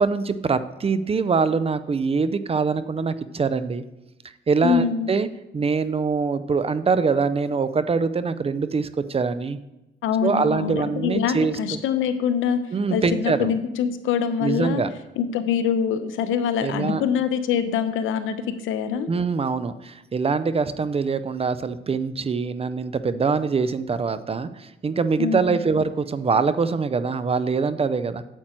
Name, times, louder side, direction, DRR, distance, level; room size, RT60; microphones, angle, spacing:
voice 1, 0.0-3.8 4.5-5.3 5.5-9.6 10.2-11.8 12.7-13.5 14.4-14.9 16.6-17.0 19.1-28.2, right 5 dB, 30° right, 13 dB, 0.5 m, -24 dB
voice 2, 4.6-5.1 10.0-12.6 12.9-14.8 15.2-18.4 18.6-19.1 25.2-25.4, left 7 dB, 85° left, 10 dB, 0.8 m, -24 dB
8.9 x 7.5 x 4.4 m, 0.97 s
cardioid pair, 90°, 20 cm